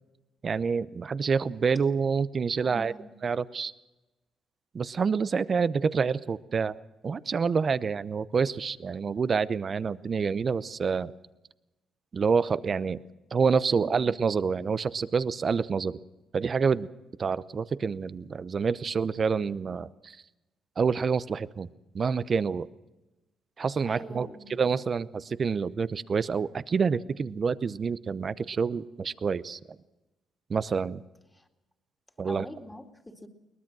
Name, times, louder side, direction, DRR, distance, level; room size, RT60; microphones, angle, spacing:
voice 1, 0.4-2.9 3.2-3.7 4.7-6.8 7.0-11.1 12.1-13.0 13.3-15.9 16.3-16.9 17.2-20.2 20.8-21.7 21.9-22.7 23.6-29.6 30.5-31.0 32.2-32.5, right 5 dB, 40° right, 15 dB, 0.8 m, -27 dB
voice 2, 2.6-3.1 13.7-14.1 23.8-24.6 31.3-31.5 32.2-33.3, left 1 dB, 10° left, 3 dB, 2.4 m, -45 dB
22.5 x 19.5 x 6.2 m, 1.0 s
cardioid pair, 90°, 0 cm